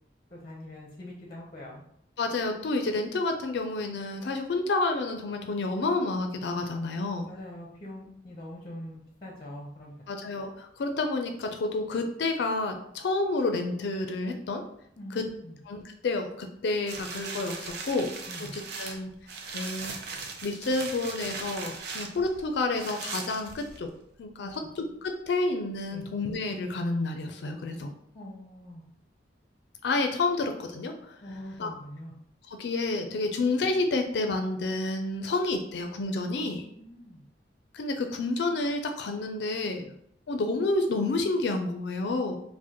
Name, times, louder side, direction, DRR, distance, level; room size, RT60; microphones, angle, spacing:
voice 1, 0.3-1.8 7.3-9.9 15.0-15.6 18.3-18.5 24.4-24.6 25.9-26.0 28.1-28.8 31.2-32.1 36.7-37.3 39.7-39.9, left 1 dB, 25° left, -2 dB, 0.7 m, -43 dB
voice 2, 2.2-7.3 10.1-14.6 15.1-15.2 15.7-18.1 18.5-19.1 19.5-23.9 24.2-27.9 29.8-31.2 31.6-31.7 32.5-36.7 37.7-39.9 40.3-42.4, left 2 dB, 65° left, 5 dB, 0.4 m, -29 dB
sound 1, 16.9-24.0 24.5-24.6, right 4 dB, 60° right, 0.5 m, -39 dB
4.8 x 2.1 x 2.9 m, 0.72 s
head